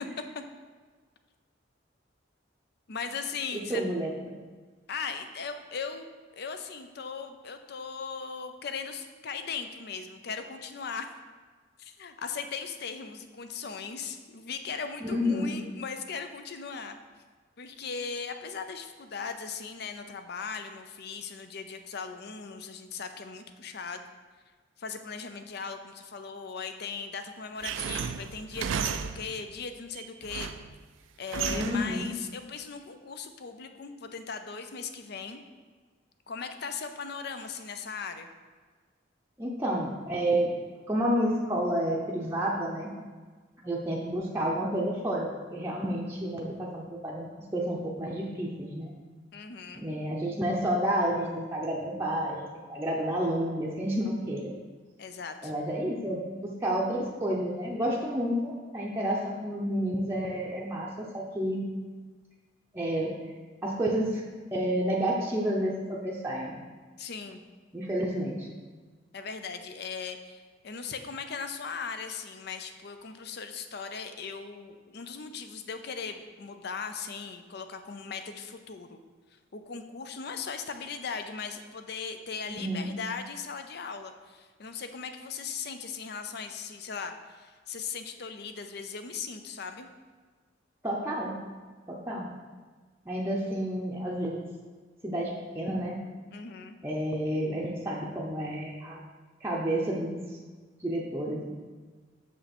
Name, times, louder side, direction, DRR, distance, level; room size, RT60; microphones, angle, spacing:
voice 1, 2.9-3.8 4.9-6.1 6.3-11.1 11.8-17.0 17.6-24.1 24.8-30.5 31.2-35.4 36.3-38.3 49.3-49.9 55.0-55.5 67.0-67.4 69.1-79.0 79.5-89.9 96.3-96.8, left 5 dB, 55° left, 8 dB, 0.6 m, -38 dB
voice 2, 3.5-4.1 15.0-15.6 31.5-32.1 39.4-40.5 40.9-42.9 43.6-48.9 49.8-54.5 55.4-61.7 62.7-63.2 63.6-64.2 64.5-66.6 67.7-68.5 82.5-82.9 90.8-91.4 91.9-92.3 93.1-94.5 95.0-96.0 96.8-99.0 99.4-100.2 100.8-101.5, right 1 dB, 15° right, -4 dB, 0.7 m, -30 dB
sound 1, 27.6-29.5 30.0-30.7 31.3-32.0, right 7 dB, 85° right, 0.4 m, -33 dB
6.5 x 5.5 x 4.3 m, 1.4 s
head